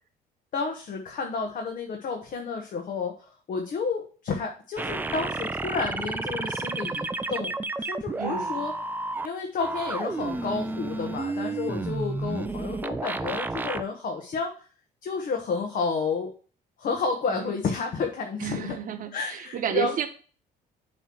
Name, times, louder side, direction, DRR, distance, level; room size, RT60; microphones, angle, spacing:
voice 1, 0.5-8.7 9.2-14.5 15.0-16.3 16.8-18.8 19.1-19.9, left 4 dB, 50° left, 2 dB, 1.2 m, -31 dB
sound 1, 4.8-9.3 9.6-13.8, right 3 dB, 10° right, 0.4 m, -31 dB
voice 2, 8.2-8.7 17.3-17.5 18.4-20.1, right 10 dB, 55° right, 8 dB, 1.0 m, -31 dB
7.7 x 3.1 x 6.1 m, 0.40 s
cardioid pair, 110°, 17 cm